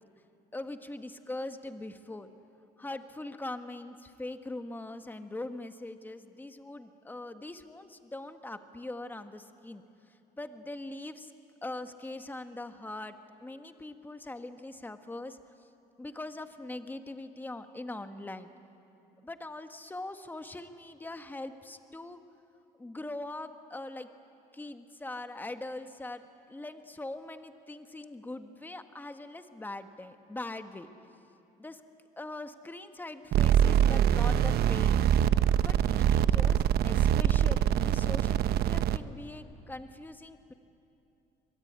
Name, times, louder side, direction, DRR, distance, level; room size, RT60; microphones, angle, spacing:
voice 1, 0.5-2.3 2.8-11.3 11.6-15.7 16.0-18.5 19.2-22.2 22.8-24.1 24.5-30.9 31.6-31.8 32.2-35.1 35.6-40.5, left 2 dB, 10° left, 8 dB, 1.4 m, -42 dB
sound 1, 33.3-39.0, right 10 dB, 70° right, 0.8 m, -24 dB
24.5 x 22.0 x 9.6 m, 2.7 s
cardioid pair, 110°, 17 cm